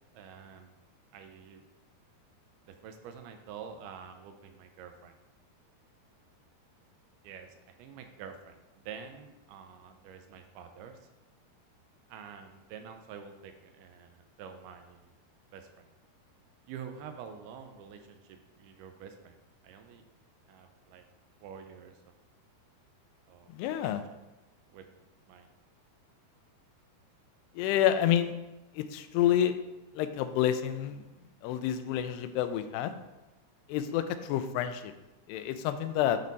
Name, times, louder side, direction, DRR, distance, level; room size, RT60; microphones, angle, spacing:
voice 1, 0.1-0.7 1.1-1.6 2.7-5.2 7.2-11.0 12.1-15.1 15.5-15.9 16.7-19.4 19.6-20.0 20.5-21.0 21.4-22.0 23.3-23.5 23.8-24.0 24.7-24.9 25.3-25.5, right 7 dB, 80° right, 6 dB, 2.5 m, -47 dB
voice 2, 23.5-24.0 27.6-28.3 28.8-29.6 30.0-31.0 31.4-32.9 33.7-34.9 35.3-36.2, left 10 dB, 90° left, 10 dB, 2.6 m, -28 dB
12.0 x 4.4 x 4.0 m, 1.0 s
omnidirectional pair, 4.7 m